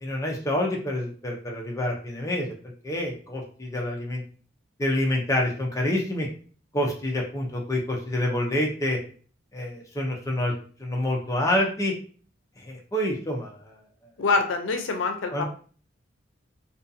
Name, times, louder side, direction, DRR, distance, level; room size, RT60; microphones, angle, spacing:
voice 1, 0.0-2.5 2.8-4.2 4.8-6.3 6.7-9.0 9.5-10.5 10.8-11.9 12.6-13.8 15.3-15.4, left 1 dB, 15° left, -1 dB, 0.5 m, -27 dB
voice 2, 14.2-15.4, left 4 dB, 85° left, 5 dB, 0.5 m, -25 dB
2.5 x 2.3 x 2.6 m, 0.42 s
head